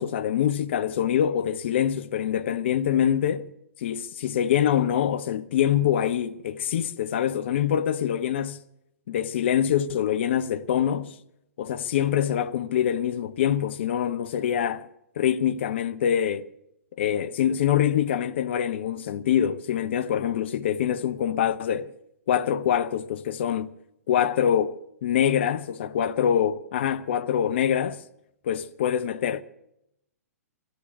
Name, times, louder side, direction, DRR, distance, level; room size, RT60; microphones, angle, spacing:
voice 1, 0.0-3.5 3.8-8.6 9.1-11.1 11.6-14.8 15.2-16.4 17.0-21.9 22.3-23.7 24.1-28.0 28.4-29.4, left 9 dB, 45° left, 0.7 m, -25 dB
13.0 x 10.5 x 9.5 m
figure-of-eight pair, 115°, 8 cm